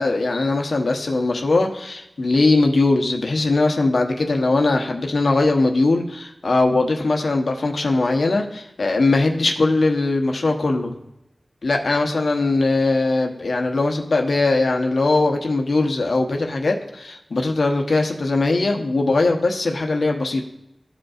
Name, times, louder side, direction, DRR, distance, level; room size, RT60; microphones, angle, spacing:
voice 1, 0.0-11.0 11.6-20.4, left 2 dB, 85° left, 3 dB, 0.9 m, -20 dB
13.0 x 5.2 x 2.4 m, 0.90 s
wide cardioid pair, 50°, 0 cm